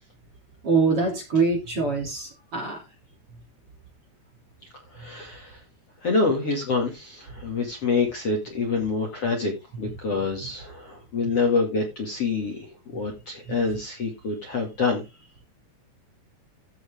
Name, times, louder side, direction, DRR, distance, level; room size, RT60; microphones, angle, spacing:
voice 1, 0.6-2.8, right 4 dB, 35° right, 1 dB, 3.2 m, -24 dB
voice 2, 4.9-5.6 6.0-9.5 9.8-15.0, left 4 dB, 40° left, 1 dB, 2.6 m, -26 dB
14.5 x 6.4 x 3.6 m, 0.25 s
omnidirectional pair, 5.1 m